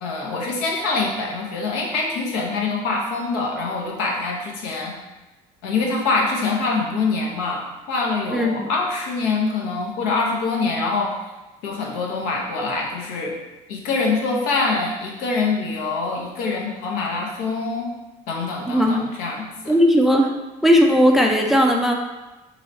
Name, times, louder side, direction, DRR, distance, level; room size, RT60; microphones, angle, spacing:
voice 1, 0.0-4.9 5.6-11.1 11.6-13.3 13.7-17.9 18.3-19.7, left 3 dB, 80° left, -1 dB, 0.9 m, -24 dB
voice 2, 8.3-8.7 18.7-19.0 19.7-20.3 20.6-21.9, equal, ahead, 1 dB, 0.3 m, -17 dB
3.0 x 2.7 x 4.1 m, 1.1 s
cardioid pair, 110°, 16 cm